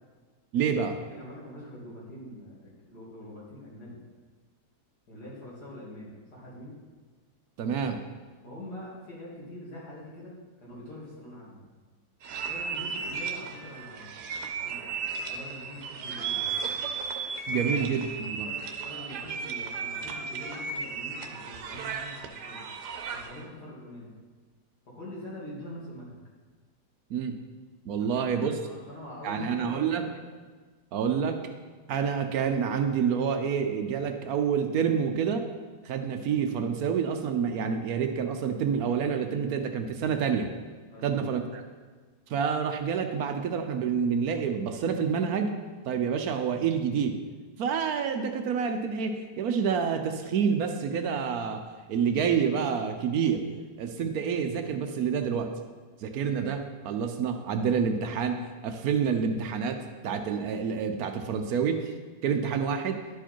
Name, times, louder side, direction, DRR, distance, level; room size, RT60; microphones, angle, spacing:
voice 1, 0.5-1.0 7.6-8.0 17.5-18.5 27.1-27.4 27.8-28.6 29.2-30.0 30.9-31.4 31.9-35.5 35.8-40.5 41.0-41.6 42.3-45.5 45.9-47.2 47.6-51.6 51.9-53.4 53.8-55.5 56.0-61.9 62.2-63.0, right 6 dB, 70° right, 7 dB, 1.1 m, -28 dB
voice 2, 1.1-4.0 5.1-6.7 8.4-11.6 12.5-14.2 14.6-16.5 17.5-17.9 18.4-22.7 23.1-24.1 24.9-26.2 28.0-30.1 40.9-41.2, left 1 dB, 70° left, -6 dB, 3.0 m, -44 dB
sound 1, 12.2-23.4, right 5 dB, 85° right, 1.3 m, -35 dB
11.5 x 4.7 x 4.4 m, 1.4 s
omnidirectional pair, 1.7 m